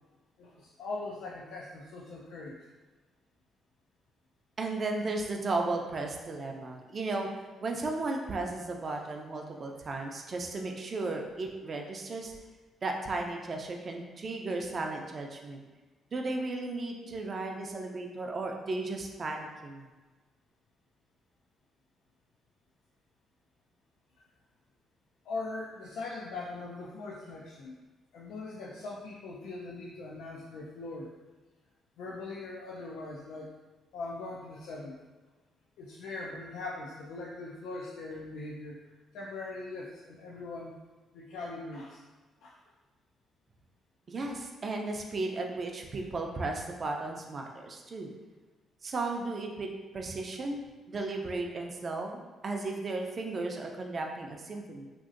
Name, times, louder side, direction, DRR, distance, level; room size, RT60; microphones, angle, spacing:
voice 1, 0.4-2.6 17.0-17.2 25.3-27.7 28.1-31.1 32.0-33.5 33.9-35.0 35.8-38.8 39.1-40.8 41.1-42.0 42.4-42.5, left 3 dB, 85° left, -3 dB, 0.3 m, -41 dB
voice 2, 4.6-7.3 7.6-12.3 12.8-15.6 16.1-19.9 44.1-48.1 48.8-50.6 50.9-54.9, right 2 dB, 40° right, 2 dB, 0.4 m, -35 dB
2.9 x 2.6 x 2.5 m, 1.3 s
cardioid pair, 90°, 0 cm